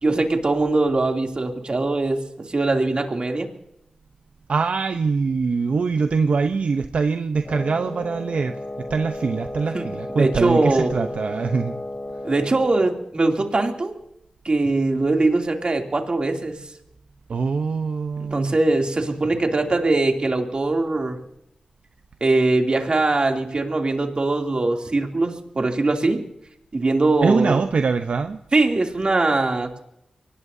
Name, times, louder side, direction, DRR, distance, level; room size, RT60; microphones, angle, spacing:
voice 1, 0.0-2.2 2.5-3.5 9.7-9.9 10.2-11.1 12.2-14.0 14.4-16.6 18.2-21.2 22.2-26.2 26.7-27.6 28.5-29.8, right 2 dB, 50° right, 3 dB, 2.7 m, -21 dB
voice 2, 4.5-11.7 17.3-18.5 27.2-28.4, right 4 dB, 75° right, 7 dB, 0.7 m, -23 dB
Wind instrument woodwind instrument, 7.4-13.1, left 1 dB, 35° left, 6.3 m, -34 dB
24.0 x 18.5 x 2.7 m, 0.80 s
cardioid pair, 50°, 2 cm